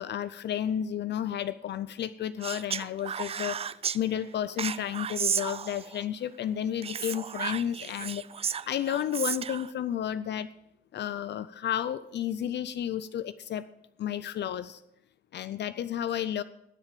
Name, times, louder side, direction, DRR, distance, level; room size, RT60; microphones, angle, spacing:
voice 1, 0.0-3.6 3.9-8.2 8.7-10.5 10.9-13.6 14.0-14.8 15.3-16.4, left 10 dB, 60° left, 14 dB, 0.5 m, -32 dB
Speech, 2.4-4.0 4.6-6.0 6.8-9.7, right 7 dB, 30° right, 0.4 m, -33 dB
20.0 x 7.3 x 5.1 m, 0.82 s
cardioid pair, 90°, 20 cm